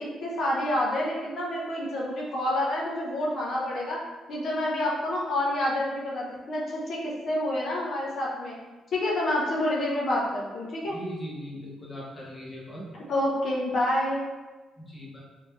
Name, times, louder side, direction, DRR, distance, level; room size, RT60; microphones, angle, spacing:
voice 1, 0.0-4.0 4.3-8.5 8.9-11.0 13.1-14.2, left 1 dB, 60° left, -4 dB, 0.8 m, -28 dB
voice 2, 10.9-12.9 14.8-15.2, equal, 15° left, -4 dB, 1.0 m, -39 dB
3.3 x 3.0 x 3.2 m, 1.2 s
cardioid pair, 90°, 0 cm